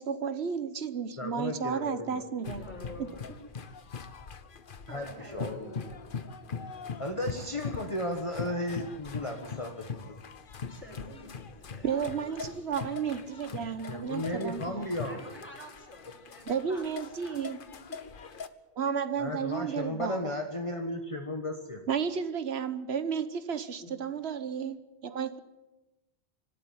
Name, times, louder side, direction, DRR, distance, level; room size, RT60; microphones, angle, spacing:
voice 1, 0.0-2.6 3.0-3.1 11.8-14.9 16.5-17.6 18.8-20.3 21.9-25.4, right 7 dB, 90° right, 12 dB, 1.3 m, -33 dB
voice 2, 1.2-2.2 4.9-5.7 7.0-10.2 13.9-15.2 19.2-21.8, left 1 dB, 30° left, 4 dB, 1.5 m, -35 dB
sound 1, 2.4-18.5, left 5 dB, 55° left, 1.1 m, -41 dB
voice 3, 2.6-3.4 4.9-5.9 10.7-12.7 12.9-14.1 15.0-17.5 17.9-18.3 23.8-23.9, left 1 dB, 10° left, 0 dB, 6.2 m, -48 dB
24.5 x 12.5 x 9.6 m, 1.0 s
omnidirectional pair, 1.1 m